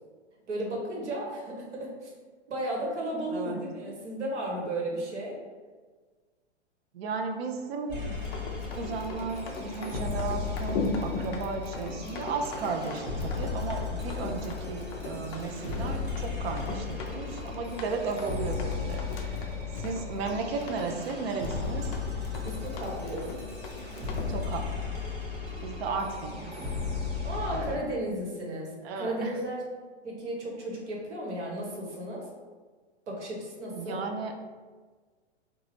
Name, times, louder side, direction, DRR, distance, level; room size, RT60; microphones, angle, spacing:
voice 1, 0.5-2.1 2.5-5.4 22.4-23.3 27.2-29.6 30.0-32.3 33.1-34.0, right 1 dB, 75° right, -2 dB, 1.2 m, -34 dB
voice 2, 6.9-8.2 8.7-19.4 19.8-21.8 24.3-24.6 25.6-26.5 27.5-27.8 28.8-29.3 33.7-34.3, right 4 dB, 60° right, 4 dB, 0.6 m, -34 dB
sound 1, 7.9-27.7, left 5 dB, 40° right, 1.2 m, -35 dB
Run, 8.2-24.3, left 3 dB, 25° left, 0.4 m, -39 dB
3.8 x 2.3 x 3.1 m, 1.4 s
hypercardioid pair, 115°, 35 cm